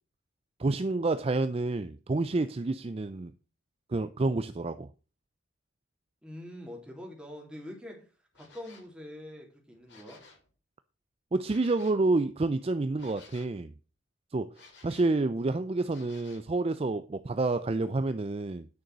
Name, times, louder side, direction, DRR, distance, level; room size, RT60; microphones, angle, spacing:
voice 1, 0.6-3.3 3.9-4.9 11.3-13.7 14.3-18.7, right 2 dB, 30° right, 0.4 m, -29 dB
voice 2, 6.2-8.1 8.3-10.2, left 1 dB, 5° right, 3.2 m, -44 dB
sound 1, 8.3-8.9 9.7-10.5 11.4-12.0 13.0-13.6 14.5-15.2 15.9-16.5, left 4 dB, 60° left, 4.1 m, -55 dB
9.5 x 6.5 x 6.0 m
head